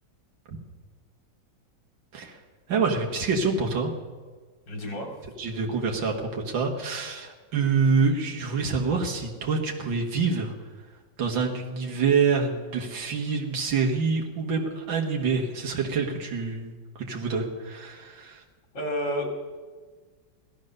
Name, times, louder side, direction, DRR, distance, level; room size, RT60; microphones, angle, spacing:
voice 1, 2.7-3.9 5.4-10.5 11.2-18.4, right 5 dB, 85° right, 1 dB, 2.3 m, -26 dB
voice 2, 4.7-5.1 18.7-19.3, equal, 75° left, 2 dB, 3.5 m, -30 dB
16.5 x 12.5 x 6.6 m, 1.4 s
omnidirectional pair, 2.0 m